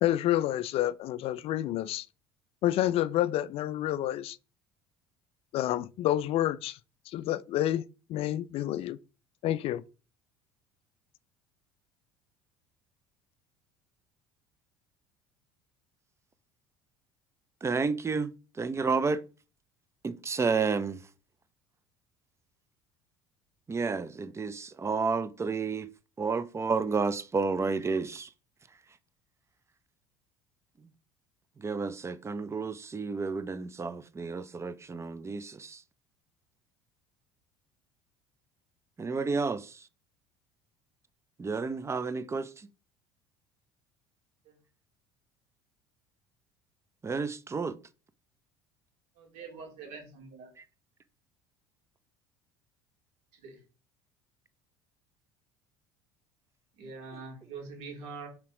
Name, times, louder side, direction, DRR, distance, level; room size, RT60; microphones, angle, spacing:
voice 1, 0.0-2.1 2.6-4.4 5.5-6.8 7.1-9.0 9.4-9.8, left 13 dB, 50° left, 0.4 m, -29 dB
voice 2, 17.6-18.3 18.6-19.2 20.0-21.0 23.7-25.9 26.2-28.3 31.6-35.8 39.0-39.9 41.4-42.7 47.0-47.8 50.6-50.7, right 4 dB, 20° right, 0.6 m, -31 dB
voice 3, 49.2-50.5 53.3-53.6 56.8-58.3, right 4 dB, 60° right, 2.5 m, -44 dB
5.7 x 4.6 x 3.7 m
hypercardioid pair, 65°, 13 cm